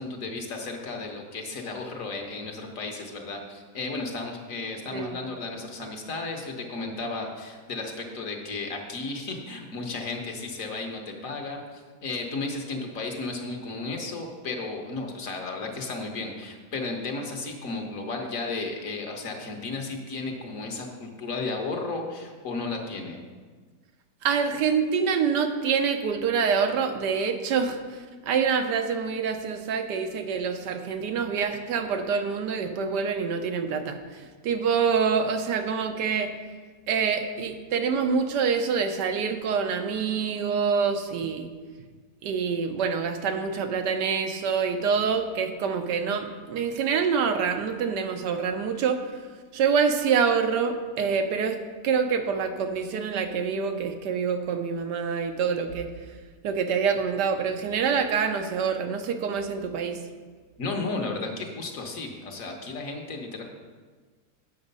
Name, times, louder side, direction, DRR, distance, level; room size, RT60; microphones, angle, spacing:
voice 1, 0.0-23.2 60.6-63.4, left 3 dB, 55° left, 2 dB, 1.3 m, -34 dB
voice 2, 24.2-28.0 28.3-36.3 36.9-41.5 42.2-49.0 49.5-51.6 51.8-55.9 56.4-60.0, right 6 dB, 85° right, 6 dB, 1.4 m, -26 dB
8.3 x 6.3 x 5.3 m, 1.5 s
omnidirectional pair, 1.8 m